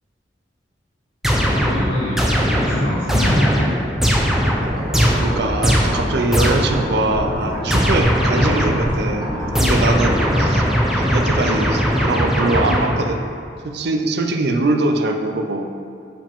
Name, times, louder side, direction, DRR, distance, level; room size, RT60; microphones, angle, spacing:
sound 1, 1.2-6.9 7.7-9.0 9.5-13.2, equal, ahead, 0.6 m, -19 dB
voice 1, 1.4-3.7 10.0-10.3, left 1 dB, 90° left, -7 dB, 1.1 m, -24 dB
sound 2, 4.6-10.5, equal, 25° right, 1.3 m, -26 dB
voice 2, 5.2-13.2 13.6-15.7, right 2 dB, 65° right, 4 dB, 0.5 m, -22 dB
7.1 x 4.9 x 3.6 m, 2.4 s
head